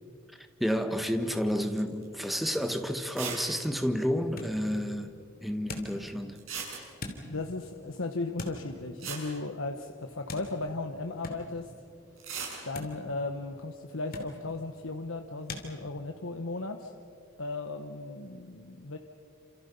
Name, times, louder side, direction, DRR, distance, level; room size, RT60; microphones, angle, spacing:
voice 1, 0.6-5.1 5.4-6.4, equal, ahead, 6 dB, 1.5 m, -30 dB
sound 1, 1.8-2.1 2.4-2.5 3.1-3.5 3.7-3.8 4.0-4.1 6.4-7.2 8.6-8.7 9.0-10.2 12.2-12.6, right 6 dB, 80° right, 7.2 m, -38 dB
sound 2, 4.1-15.7, left 2 dB, 45° left, 3.0 m, -47 dB
voice 2, 7.3-11.7 12.6-16.9 17.4-19.0, left 2 dB, 85° left, 5 dB, 1.3 m, -36 dB
28.5 x 27.5 x 5.6 m, 2.4 s
head